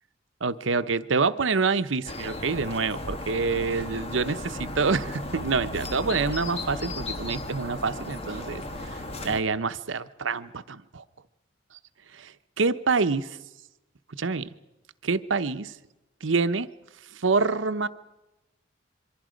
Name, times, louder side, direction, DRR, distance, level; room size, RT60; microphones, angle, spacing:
voice 1, 0.4-8.6 8.9-9.0 9.2-11.0 12.1-12.3 12.6-13.4 14.2-14.5 15.0-15.7 16.2-16.7 17.1-17.9, right 4 dB, 90° right, 12 dB, 0.8 m, -26 dB
sound 1, 2.0-9.4, left 1 dB, 30° left, 1.4 m, -35 dB
26.5 x 23.5 x 5.2 m, 1.0 s
head